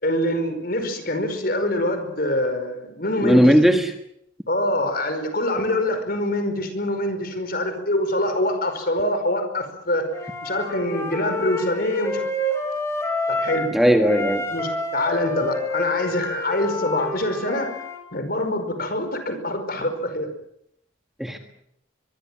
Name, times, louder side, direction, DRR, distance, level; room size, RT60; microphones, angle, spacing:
voice 1, 0.0-3.5 4.5-10.0 10.4-12.2 13.4-13.7 14.5-17.8 18.1-20.3, left 1 dB, 50° left, 8 dB, 5.1 m, -25 dB
voice 2, 3.2-3.9 13.7-14.4 21.2-21.4, equal, ahead, 4 dB, 1.6 m, -17 dB
Wind instrument woodwind instrument, 10.1-13.8 14.0-18.0, left 1 dB, 15° left, 5.3 m, -28 dB
24.0 x 22.5 x 7.6 m, 0.77 s
head